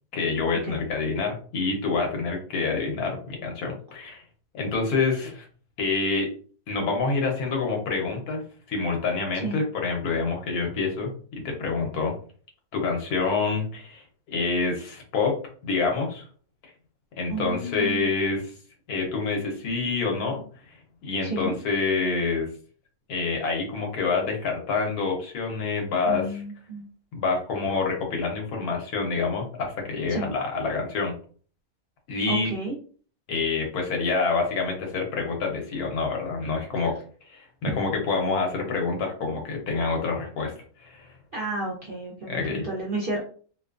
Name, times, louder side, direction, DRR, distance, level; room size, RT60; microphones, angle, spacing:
voice 1, 0.1-4.2 4.5-5.5 5.8-6.3 6.7-8.4 8.7-12.1 12.7-15.4 15.6-16.2 17.2-18.5 18.9-20.4 21.0-22.5 23.1-26.4 27.1-31.1 32.1-32.5 33.3-36.9 37.3-40.5 40.8-41.2 42.3-42.7, left 4 dB, 85° left, 1 dB, 1.3 m, -27 dB
voice 2, 17.3-18.1 21.2-21.5 26.0-26.9 30.1-30.3 32.3-32.8 37.7-37.8 41.3-43.2, right 2 dB, 60° right, -4 dB, 0.5 m, -31 dB
2.8 x 2.3 x 2.3 m, 0.43 s
omnidirectional pair, 1.6 m